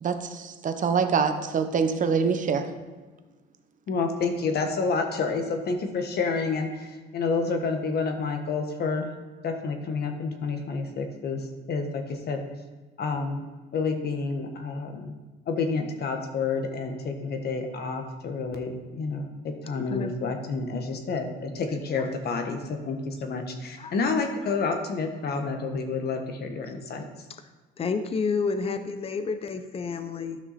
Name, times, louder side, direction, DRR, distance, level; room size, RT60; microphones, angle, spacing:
voice 1, 0.0-2.7, right 6 dB, 40° right, 8 dB, 0.9 m, -25 dB
voice 2, 3.9-9.1 9.4-12.4 13.0-13.4 13.7-15.1 15.5-27.0, left 4 dB, 55° left, 5 dB, 1.4 m, -29 dB
voice 3, 27.8-30.4, left 5 dB, 30° left, 9 dB, 0.6 m, -30 dB
13.0 x 6.0 x 4.1 m, 1.3 s
cardioid pair, 115°, 20 cm